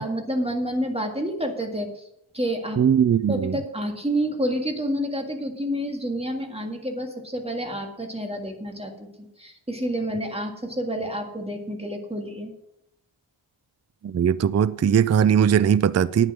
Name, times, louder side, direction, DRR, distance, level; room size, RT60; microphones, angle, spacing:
voice 1, 0.0-2.0 2.3-2.8 3.3-12.5, equal, 10° right, 1.8 m, -29 dB
voice 2, 2.8-3.6 14.0-16.3, right 8 dB, 35° right, 0.4 m, -19 dB
9.9 x 9.6 x 6.0 m
wide cardioid pair, 115°, 49 cm